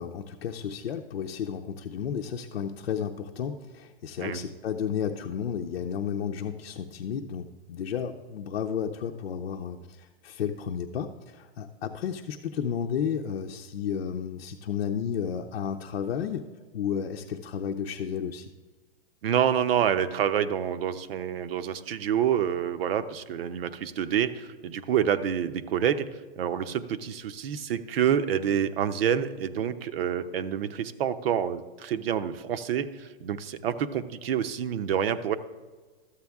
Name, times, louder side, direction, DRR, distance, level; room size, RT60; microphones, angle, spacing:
voice 1, 0.0-16.4 16.7-18.5, left 8 dB, 75° left, 2 dB, 0.7 m, -32 dB
voice 2, 19.2-26.1 26.4-35.4, right 9 dB, 65° right, 11 dB, 0.8 m, -27 dB
13.0 x 8.2 x 3.5 m, 1.4 s
hypercardioid pair, 145°, 31 cm